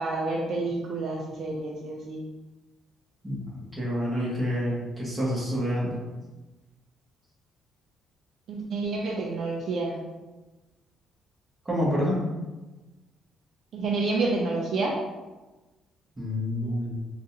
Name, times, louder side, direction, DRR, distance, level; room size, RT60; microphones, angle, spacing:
voice 1, 0.0-2.2 8.5-10.1 13.7-15.0, right 3 dB, 60° right, -1 dB, 0.5 m, -29 dB
voice 2, 3.7-6.0 11.6-12.2 16.2-16.9, equal, 20° right, -6 dB, 1.5 m, -28 dB
3.8 x 2.5 x 2.8 m, 1.1 s
cardioid pair, 95°, 0 cm